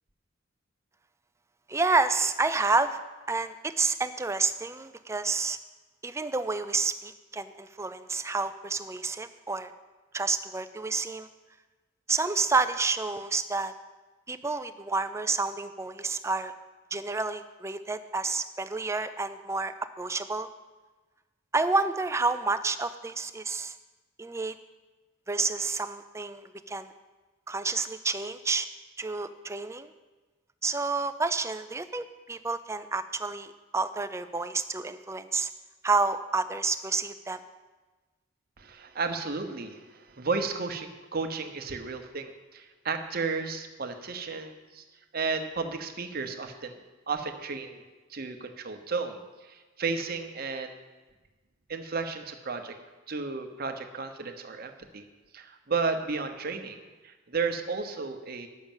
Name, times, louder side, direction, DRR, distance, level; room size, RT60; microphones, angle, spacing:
voice 1, 1.7-3.0 3.3-5.6 6.0-9.7 10.1-11.3 12.1-13.7 14.3-16.5 16.9-20.5 21.5-23.7 24.2-24.5 25.3-26.9 27.5-28.7 29.0-29.9 30.6-35.5 35.8-37.4, right 3 dB, 15° right, 11 dB, 0.4 m, -29 dB
voice 2, 38.6-44.8 45.1-46.8 47.1-47.8 48.1-50.8 51.7-52.7 53.1-55.0 55.3-58.5, right 4 dB, 50° right, 6 dB, 1.0 m, -33 dB
10.5 x 6.5 x 7.3 m, 1.2 s
head